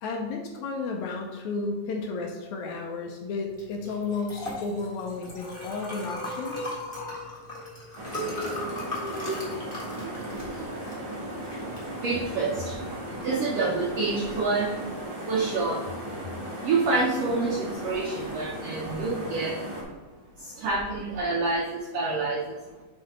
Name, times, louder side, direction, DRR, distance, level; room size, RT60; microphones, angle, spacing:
voice 1, 0.0-6.7, left 3 dB, 75° left, 1 dB, 1.9 m, -33 dB
Liquid, 3.5-13.7, left 1 dB, 30° left, 1.0 m, -37 dB
sound 1, 8.0-19.8, right 1 dB, 25° right, 1.1 m, -36 dB
voice 2, 11.8-12.9 13.2-14.8 15.1-15.9 16.6-19.6 20.4-22.6, right 3 dB, 80° right, -2 dB, 1.4 m, -28 dB
7.6 x 3.2 x 5.0 m, 1.3 s
omnidirectional pair, 3.8 m